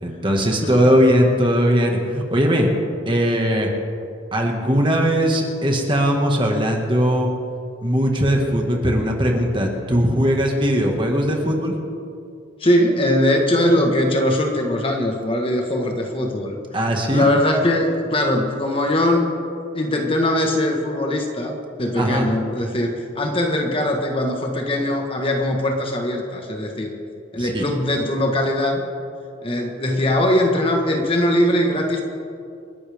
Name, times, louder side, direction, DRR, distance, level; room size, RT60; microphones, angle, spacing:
voice 1, 0.0-2.7 3.1-3.7 4.3-7.3 7.8-11.7 16.7-17.3 22.0-22.3 27.4-27.6, equal, 25° right, 1 dB, 1.8 m, -19 dB
voice 2, 12.6-16.6 17.1-19.3 19.7-27.0 27.3-28.8 29.4-32.0, left 1 dB, 30° left, 2 dB, 1.4 m, -21 dB
28.0 x 11.5 x 3.6 m, 2.5 s
head